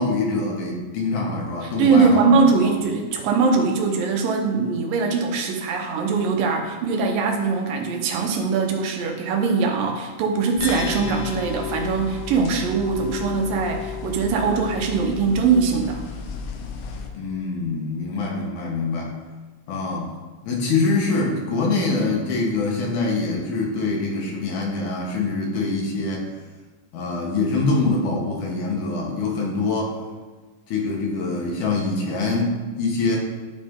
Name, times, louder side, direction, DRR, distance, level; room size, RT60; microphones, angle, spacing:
voice 1, 0.0-2.4 2.6-2.7 10.9-11.0 17.1-19.1 19.7-20.1 20.4-26.2 26.9-29.9 30.7-33.2, left 3 dB, 70° left, -1 dB, 2.5 m, -24 dB
voice 2, 1.6-16.0, right 4 dB, 80° right, 2 dB, 2.5 m, -21 dB
sound 1, 10.6-17.1, left 6 dB, 85° left, 2.4 m, -32 dB
12.0 x 4.1 x 3.7 m, 1.3 s
omnidirectional pair, 4.0 m